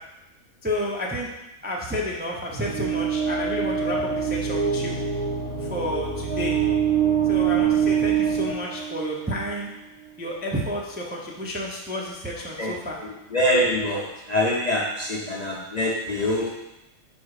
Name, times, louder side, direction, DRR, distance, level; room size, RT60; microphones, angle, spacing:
voice 1, 0.6-1.3 1.6-5.0 5.6-6.6 7.3-9.7 10.2-13.0, equal, 15° right, -3 dB, 0.4 m, -30 dB
sound 1, 2.5-9.5, right 7 dB, 80° right, 1.3 m, -24 dB
voice 2, 12.6-16.5, left 1 dB, 40° left, -4 dB, 0.6 m, -25 dB
4.9 x 4.2 x 4.8 m, 0.95 s
omnidirectional pair, 1.5 m